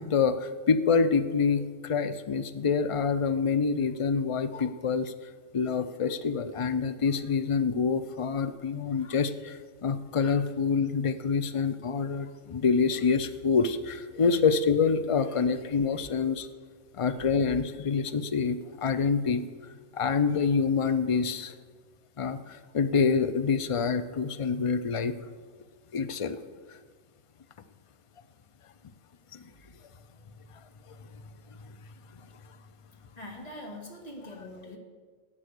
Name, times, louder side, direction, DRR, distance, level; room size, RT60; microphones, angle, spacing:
voice 1, 0.0-5.1 5.5-16.5 17.0-19.4 19.9-21.5 22.2-25.2 25.9-26.4 29.3-29.4, left 5 dB, 55° left, 10 dB, 0.3 m, -26 dB
voice 2, 33.2-34.8, left 1 dB, 30° left, 0 dB, 2.1 m, -42 dB
13.0 x 8.8 x 6.6 m, 1.5 s
omnidirectional pair, 1.4 m